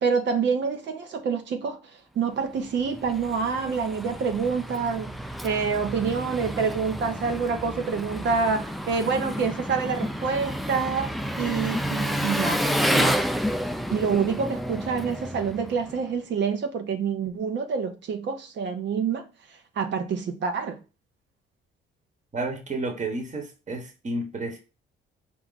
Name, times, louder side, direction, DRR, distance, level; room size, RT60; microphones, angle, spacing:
voice 1, 0.0-1.8 2.2-5.1 5.4-11.1 11.4-13.2 13.9-19.2 19.8-20.8, right 5 dB, 65° right, 0.8 m, -27 dB
Engine, 2.6-16.1, equal, ahead, 0.3 m, -30 dB
voice 2, 22.3-24.6, right 2 dB, 40° right, 1.3 m, -31 dB
4.7 x 2.4 x 4.0 m
cardioid pair, 90°, 20 cm